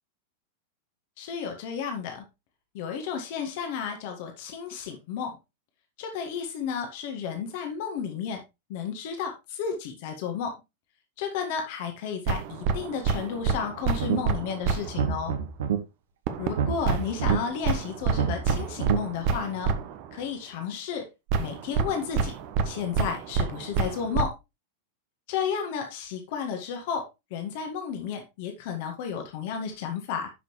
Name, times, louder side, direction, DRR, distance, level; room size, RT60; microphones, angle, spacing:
voice 1, 1.2-2.3 2.7-5.4 6.0-8.4 8.7-10.6 11.2-15.3 16.4-19.7 20.1-21.1 21.4-22.3 22.6-24.3 25.3-30.3, left 7 dB, 50° left, 5 dB, 1.8 m, -32 dB
sound 1, 12.3-15.1 16.3-20.1 21.3-24.2, right 5 dB, 45° right, 1.1 m, -28 dB
sound 2, 14.0-14.4 14.8-15.8 16.4-17.4 18.0-19.0, right 8 dB, 60° right, 1.3 m, -28 dB
11.0 x 6.1 x 3.2 m, 0.24 s
figure-of-eight pair, 90°, 0 cm